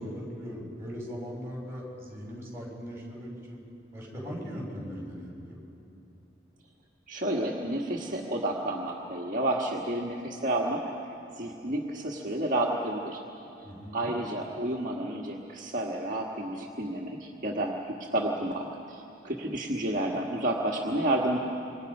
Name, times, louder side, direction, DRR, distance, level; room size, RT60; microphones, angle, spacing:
voice 1, 0.0-3.6 3.9-5.6 13.6-14.2, equal, 15° right, -3 dB, 6.0 m, -39 dB
voice 2, 7.1-10.8 11.3-13.2 13.9-17.7 18.1-21.4, right 1 dB, 45° right, -3 dB, 1.6 m, -30 dB
27.0 x 24.0 x 5.5 m, 2.9 s
head